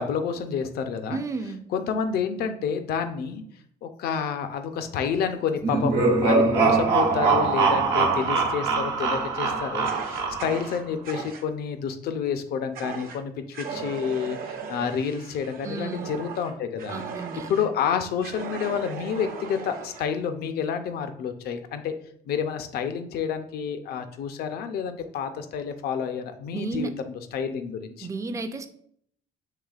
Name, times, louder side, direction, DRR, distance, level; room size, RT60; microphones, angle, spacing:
voice 1, 0.0-1.2 1.7-3.4 3.8-17.0 17.5-21.9 22.3-26.9 27.3-28.1, left 7 dB, 65° left, 8 dB, 0.5 m, -29 dB
voice 2, 1.1-1.7 15.6-16.2 16.9-17.7 26.5-26.9 28.0-28.7, right 4 dB, 20° right, 8 dB, 0.4 m, -33 dB
sound 1, 5.6-10.7, right 4 dB, 80° right, 1.0 m, -23 dB
Fire, 9.8-11.5 12.7-13.2 13.5-17.7 18.2-20.1, right 6 dB, 60° right, 0.7 m, -37 dB
6.6 x 3.3 x 2.4 m, 0.66 s
cardioid pair, 110°, 17 cm